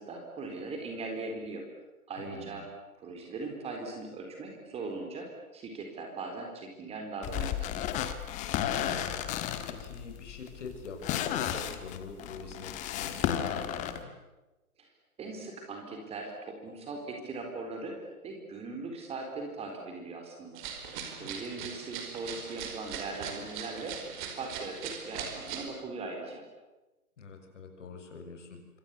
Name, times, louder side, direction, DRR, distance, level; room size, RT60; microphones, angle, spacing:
voice 1, 0.0-1.6 2.1-2.7 3.0-5.3 5.5-7.8 15.2-18.0 18.2-20.6 21.1-26.5, right 3 dB, 15° right, 2 dB, 4.1 m, -39 dB
voice 2, 2.2-2.6 8.5-9.2 9.7-14.1 21.1-21.7 27.2-28.8, left 4 dB, 50° left, 5 dB, 6.8 m, -45 dB
sound 1, 7.2-14.0, left 10 dB, 15° left, 1.5 m, -33 dB
sound 2, 20.5-25.7, right 7 dB, 30° right, 4.7 m, -40 dB
26.5 x 24.5 x 8.4 m, 1.1 s
figure-of-eight pair, 130°, 45 cm